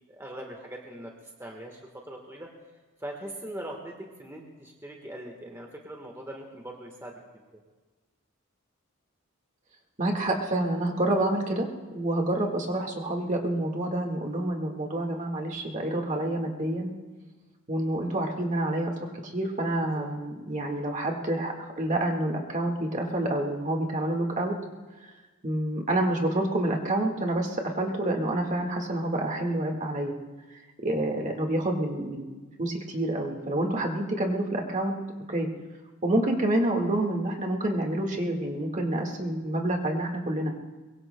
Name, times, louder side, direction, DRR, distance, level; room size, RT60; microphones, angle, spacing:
voice 1, 0.1-1.1 1.4-2.5 3.0-7.3 20.0-20.1, right 1 dB, 15° right, 1 dB, 1.3 m, -41 dB
voice 2, 10.0-11.7 11.9-16.9 17.7-18.9 19.3-24.5 25.4-30.1 30.8-32.3 32.6-35.0 35.3-35.5 36.0-40.5, right 1 dB, 35° right, 2 dB, 1.7 m, -28 dB
23.0 x 22.5 x 2.2 m, 1.3 s
head